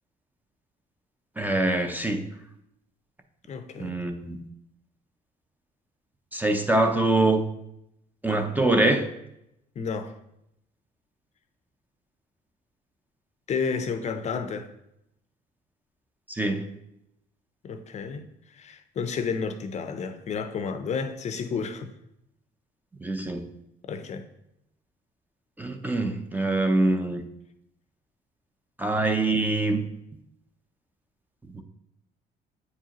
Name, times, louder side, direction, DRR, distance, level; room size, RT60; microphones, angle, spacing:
voice 1, 1.4-2.2 3.8-4.4 6.3-7.4 8.2-9.1 16.3-16.6 23.0-23.5 25.6-27.2 28.8-29.8 31.5-31.6, right 2 dB, 10° right, 0.5 m, -24 dB
voice 2, 3.5-4.0 9.8-10.1 13.5-14.7 17.6-18.3 18.5-21.9 23.9-24.3, left 5 dB, 40° left, 0.5 m, -31 dB
8.4 x 4.7 x 2.9 m
cardioid pair, 110°, 17 cm